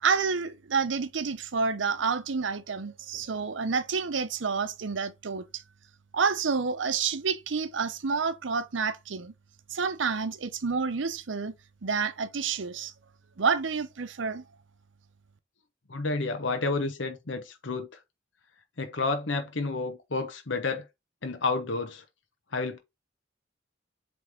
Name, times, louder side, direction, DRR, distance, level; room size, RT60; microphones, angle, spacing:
voice 1, 0.0-5.6 6.1-9.3 9.7-11.5 11.8-12.9 13.4-14.4, right 5 dB, 75° right, 0.7 m, -29 dB
voice 2, 15.9-17.9 18.8-20.9 21.2-22.0 22.5-22.8, left 3 dB, 70° left, 1.0 m, -30 dB
7.9 x 3.4 x 3.5 m
head